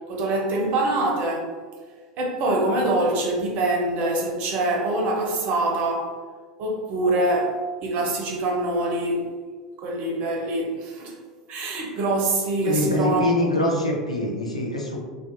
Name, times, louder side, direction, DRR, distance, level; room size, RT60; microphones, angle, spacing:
voice 1, 0.1-1.6 2.2-6.1 6.6-9.3 9.8-11.1 11.5-13.2 13.5-13.6, right 2 dB, 45° right, 0 dB, 0.6 m, -24 dB
voice 2, 12.6-15.0, left 1 dB, 85° left, -1 dB, 0.4 m, -24 dB
2.5 x 2.2 x 2.5 m, 1.5 s
figure-of-eight pair, 80°, 3 cm